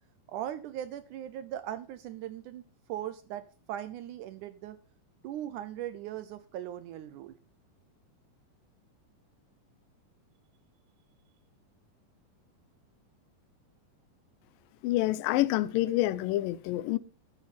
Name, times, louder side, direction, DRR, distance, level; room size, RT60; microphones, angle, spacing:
voice 1, 0.3-2.6 2.9-4.8 5.2-7.4, right 11 dB, 80° right, 1.8 m, -39 dB
voice 2, 14.8-17.0, left 16 dB, 80° left, 2.3 m, -27 dB
13.5 x 8.3 x 4.1 m
omnidirectional pair, 4.2 m